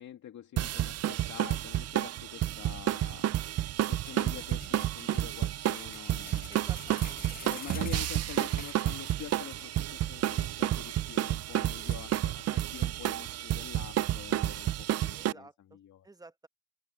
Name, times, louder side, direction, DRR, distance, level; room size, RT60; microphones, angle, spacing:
voice 1, 0.0-6.6 7.4-16.1, left 10 dB, 70° left, 2.3 m, -47 dB
sound 1, 0.6-15.3, right 13 dB, 55° right, 0.5 m, -31 dB
sound 2, 3.3-10.2 10.7-10.8 11.0-12.5, right 11 dB, 70° right, 4.5 m, -65 dB
sound 3, 4.1-9.8 10.1-10.2 10.6-10.7 11.0-11.2 11.7-12.5 13.0-13.1, left 5 dB, 30° left, 1.4 m, -49 dB
voice 2, 6.5-7.2 15.2-15.8 16.0-16.5, right 2 dB, 10° right, 1.1 m, -52 dB
open air
cardioid pair, 90°, 30 cm